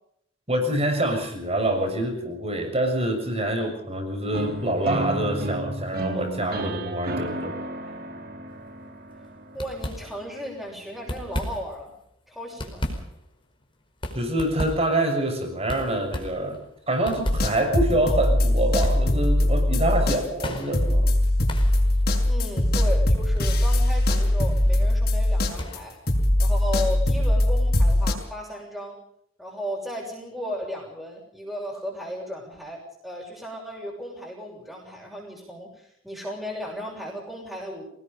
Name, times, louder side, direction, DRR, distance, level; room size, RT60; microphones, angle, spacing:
voice 1, 0.5-7.6 14.1-21.1, right 1 dB, 30° right, 6 dB, 6.8 m, -26 dB
sound 1, 4.3-10.3, right 1 dB, 50° right, 2.9 m, -32 dB
sound 2, 8.6-8.9 9.1-9.3 9.5-10.5 10.9-11.9 12.3-27.2, equal, 25° left, 5.0 m, -37 dB
voice 2, 9.5-11.9 12.3-12.9 22.3-26.0 26.4-29.0 29.4-37.8, equal, ahead, -4 dB, 7.0 m, -35 dB
sound 3, 17.2-25.8 26.1-28.1, left 1 dB, 50° left, 6.0 m, -21 dB
27.5 x 19.5 x 5.5 m, 0.71 s
head